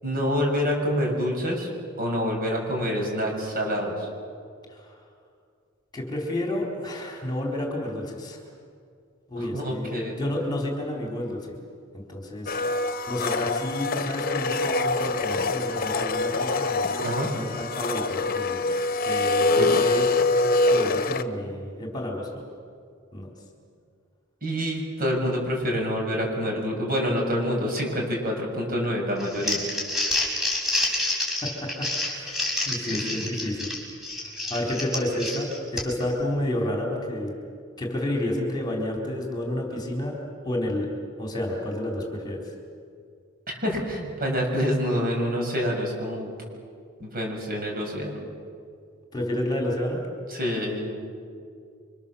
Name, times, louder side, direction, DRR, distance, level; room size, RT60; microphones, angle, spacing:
voice 1, 0.0-1.7 2.0-4.1 9.4-10.2 17.0-17.3 19.5-19.8 24.4-29.6 32.9-33.3 43.6-46.3 47.0-48.2 50.3-50.9, equal, 45° right, 0 dB, 6.9 m, -27 dB
voice 2, 5.9-8.4 9.3-11.5 11.9-12.6 13.1-17.0 17.3-18.6 19.1-20.1 20.7-22.4 23.1-23.3 30.7-31.0 31.4-33.7 34.2-37.4 37.8-40.2 40.4-40.9 41.2-42.4 49.1-50.1, left 1 dB, 20° left, 0 dB, 4.2 m, -30 dB
Domestic sounds home sounds, 12.5-21.2, left 2 dB, 50° left, 1.2 m, -25 dB
Crumpling crinkling, 29.2-36.1, left 2 dB, ahead, 6.3 m, -28 dB
30.0 x 25.0 x 7.3 m, 2.3 s
head